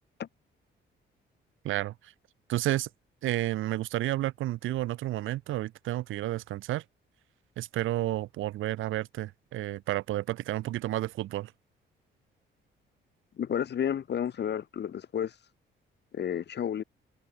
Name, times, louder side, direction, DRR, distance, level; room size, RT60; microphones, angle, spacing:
voice 1, 1.6-2.1 2.5-2.9 3.2-6.8 7.6-11.5, right 15 dB, 85° right, 2.6 m, -31 dB
voice 2, 13.4-15.3 16.1-16.8, left 9 dB, 60° left, 4.3 m, -31 dB
cardioid pair, 90°, 20 cm